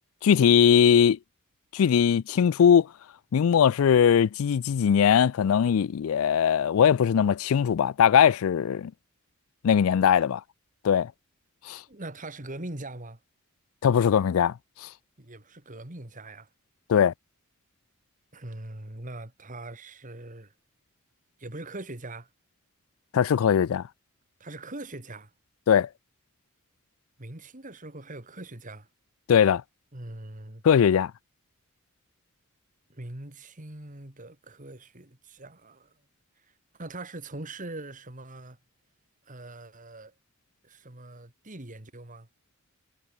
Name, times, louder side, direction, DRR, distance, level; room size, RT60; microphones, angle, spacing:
voice 1, 0.2-1.2 1.7-2.9 3.3-8.9 9.6-10.4 10.8-11.1 11.7-11.8 13.8-14.5 14.8-14.9 16.9-17.1 23.1-23.8 25.7-25.9 29.3-29.6 30.6-31.1, left 8 dB, 75° left, 0.4 m, -20 dB
voice 2, 11.9-13.2 15.2-16.5 18.3-20.5 21.4-22.3 24.4-25.3 27.2-28.9 29.9-30.6 32.9-36.0 36.4-38.6 39.2-40.1 40.6-42.3, right 2 dB, 40° right, 2.5 m, -42 dB
head